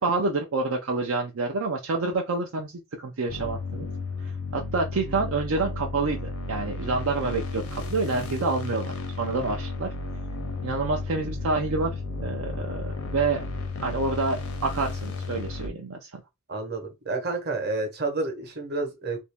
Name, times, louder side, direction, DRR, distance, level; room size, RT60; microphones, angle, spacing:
voice 1, 0.0-2.7 3.0-3.9 4.2-9.9 10.6-13.5 13.8-16.1, right 3 dB, 65° right, 0.5 m, -28 dB
sound 1, 3.3-15.7, left 3 dB, 70° left, 0.7 m, -33 dB
voice 2, 16.5-19.2, right 3 dB, 45° right, 1.0 m, -30 dB
2.8 x 2.7 x 3.4 m
head